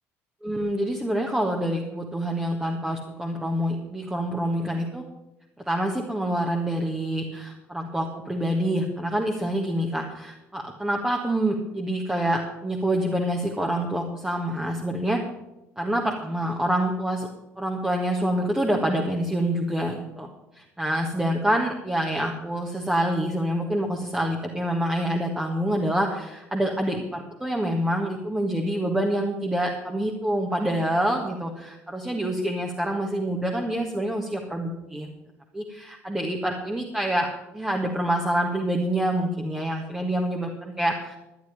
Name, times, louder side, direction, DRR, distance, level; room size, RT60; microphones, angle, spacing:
voice 1, 0.4-5.0 5.6-15.2 15.8-17.3 17.6-20.3 20.5-35.1 35.5-41.2, right 1 dB, 10° right, 0 dB, 1.6 m, -26 dB
11.5 x 11.0 x 5.1 m, 0.97 s
figure-of-eight pair, 55°, 8 cm